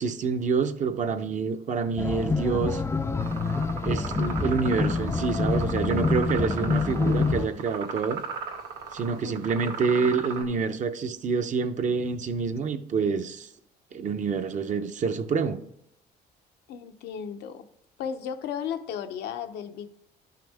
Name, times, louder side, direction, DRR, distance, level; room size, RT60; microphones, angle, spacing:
voice 1, 0.0-2.8 3.8-8.2 8.9-13.5 13.9-15.6, right 5 dB, 45° right, 8 dB, 0.8 m, -27 dB
sound 1, 2.0-7.5, left 4 dB, 15° left, 0.4 m, -26 dB
sound 2, 3.2-10.4, right 5 dB, 80° right, 1.6 m, -37 dB
voice 2, 9.2-9.8 16.7-17.6 18.0-19.9, left 8 dB, 80° left, 7 dB, 0.8 m, -35 dB
12.0 x 5.9 x 3.5 m, 0.75 s
cardioid pair, 110°, 17 cm